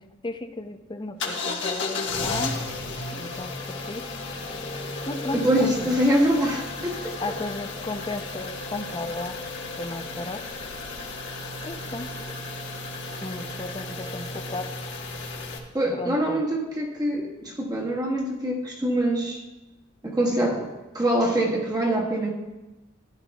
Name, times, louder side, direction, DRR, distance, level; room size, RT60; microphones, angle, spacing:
voice 1, 0.0-2.6 3.1-4.0 5.1-6.0 7.2-9.4 9.8-10.4 11.6-12.1 13.2-14.7 15.9-16.4, left 2 dB, 25° left, 7 dB, 0.6 m, -34 dB
sound 1, 1.2-15.6, left 3 dB, 65° left, 1.4 m, -34 dB
voice 2, 5.3-7.2 15.7-19.4 20.0-22.3, right 1 dB, 20° right, -3 dB, 1.6 m, -24 dB
15.0 x 10.5 x 2.3 m, 1.1 s
head